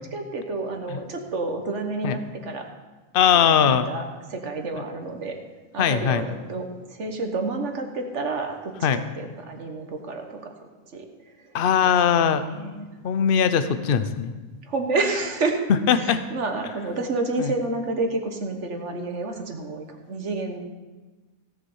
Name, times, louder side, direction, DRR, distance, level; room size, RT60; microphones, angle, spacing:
voice 1, 0.0-2.6 3.3-4.0 4.3-5.3 5.7-10.5 10.9-11.1 11.8-11.9 12.4-12.9 14.7-15.6 16.0-20.6, right 3 dB, 50° right, 4 dB, 1.5 m, -29 dB
voice 2, 3.1-3.9 5.8-6.3 8.8-9.0 11.5-12.4 13.0-14.3 15.7-16.2 17.4-17.5, left 8 dB, 50° left, 11 dB, 0.7 m, -20 dB
16.5 x 7.3 x 5.5 m, 1.3 s
omnidirectional pair, 1.6 m